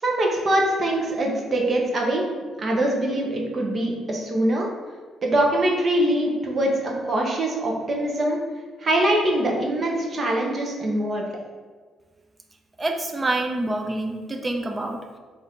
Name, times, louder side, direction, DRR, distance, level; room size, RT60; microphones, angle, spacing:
voice 1, 0.0-2.2 2.6-4.7 5.2-8.4 8.8-11.3, right 1 dB, 40° right, 0 dB, 1.0 m, -23 dB
voice 2, 12.8-15.2, right 2 dB, 25° right, 4 dB, 0.6 m, -27 dB
3.8 x 2.8 x 4.4 m, 1.5 s
cardioid pair, 90°, 0 cm